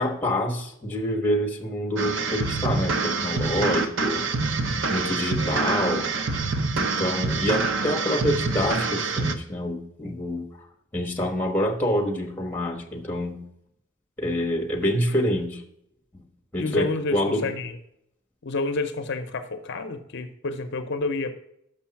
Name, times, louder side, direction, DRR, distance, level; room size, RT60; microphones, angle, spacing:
voice 1, 0.0-4.6 4.9-6.1 6.8-10.7 10.9-13.4 14.2-15.6 16.1-16.2 16.5-17.5, equal, 10° left, 1 dB, 1.2 m, -27 dB
sound 1, 2.0-9.3, right 4 dB, 65° right, 0.7 m, -26 dB
voice 2, 16.6-17.8 18.4-21.3, left 3 dB, 60° left, 8 dB, 0.6 m, -29 dB
6.7 x 5.4 x 5.7 m, 0.74 s
head